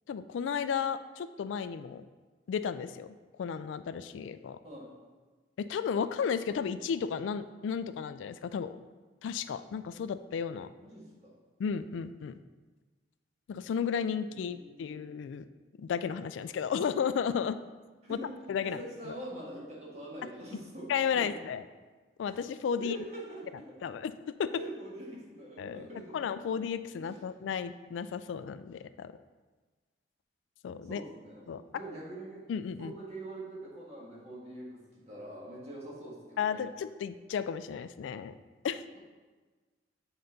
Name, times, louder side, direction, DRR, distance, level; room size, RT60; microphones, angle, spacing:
voice 1, 0.1-2.1 2.5-4.6 5.6-8.8 9.2-10.7 11.6-12.3 13.5-15.5 15.8-17.6 18.1-18.2 18.5-18.8 19.1-19.2 20.9-21.6 22.2-23.0 23.8-24.1 24.4-24.5 25.6-25.9 26.1-29.1 30.6-31.0 31.5-31.6 32.5-32.9 36.4-38.3 38.6-38.8, left 7 dB, 90° left, 12 dB, 0.3 m, -33 dB
voice 2, 10.8-11.4 14.2-15.0 18.0-18.4 18.6-20.9 21.1-21.4 22.8-23.9 24.5-26.2 27.0-27.1 30.8-32.5 32.8-36.6, right 1 dB, 35° right, -5 dB, 1.7 m, -44 dB
8.7 x 3.9 x 3.9 m, 1.3 s
head